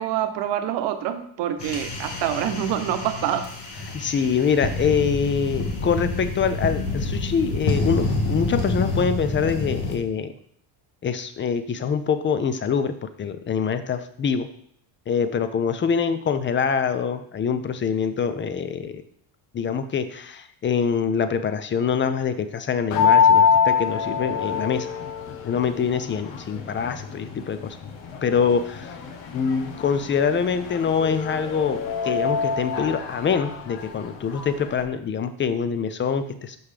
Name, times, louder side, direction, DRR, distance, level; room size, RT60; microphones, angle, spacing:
voice 1, 0.0-3.5 4.0-4.1, right 10 dB, 70° right, 8 dB, 0.9 m, -26 dB
sound 1, 1.6-10.0, left 2 dB, 60° left, 1.5 m, -28 dB
voice 2, 3.9-10.3 11.0-14.5 15.1-19.0 19.5-24.9 25.4-27.8 28.2-28.9 29.3-36.6, left 6 dB, 25° left, 10 dB, 0.5 m, -24 dB
sound 2, 22.9-34.8, left 6 dB, 85° left, 1.0 m, -25 dB
6.1 x 5.4 x 3.3 m, 0.65 s
cardioid pair, 105°, 45 cm